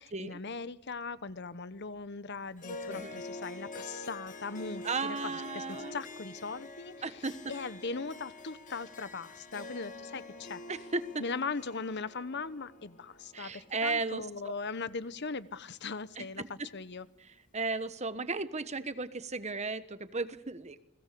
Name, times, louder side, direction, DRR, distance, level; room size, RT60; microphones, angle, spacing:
voice 1, 0.0-7.2 7.5-10.6 11.2-17.1, left 4 dB, 55° left, 15 dB, 1.0 m, -39 dB
Harp, 2.6-15.1, left 2 dB, 40° left, 1.9 m, -46 dB
voice 2, 2.9-3.2 4.8-6.0 7.0-7.4 10.7-11.2 13.3-14.5 16.2-16.7 17.5-20.8, right 3 dB, 30° right, 12 dB, 1.3 m, -35 dB
29.5 x 20.5 x 6.9 m, 0.86 s
head